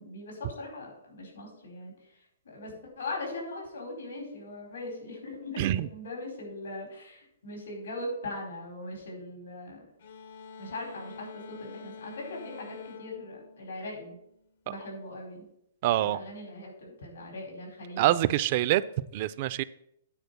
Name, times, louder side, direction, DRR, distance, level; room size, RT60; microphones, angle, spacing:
voice 1, 0.0-9.9 10.6-14.2 14.7-15.5 16.0-18.3, left 2 dB, 90° left, 0 dB, 4.3 m, -40 dB
voice 2, 5.6-5.9 15.8-16.2 18.0-18.8 19.1-19.6, right 14 dB, 40° right, 15 dB, 0.4 m, -25 dB
sound 1, 10.0-14.5, left 4 dB, 65° left, 0.8 m, -47 dB
9.4 x 4.3 x 6.7 m, 0.75 s
hypercardioid pair, 150°, 0 cm